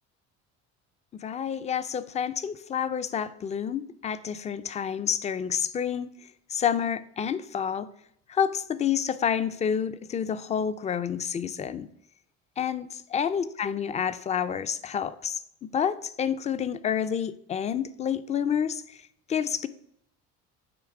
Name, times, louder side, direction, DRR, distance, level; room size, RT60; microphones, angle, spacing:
voice 1, 1.1-6.1 6.5-7.9 8.3-11.9 12.6-19.0 19.3-19.7, left 8 dB, 20° left, 14 dB, 0.3 m, -29 dB
8.8 x 3.1 x 4.7 m, 0.72 s
cardioid pair, 105°, 32 cm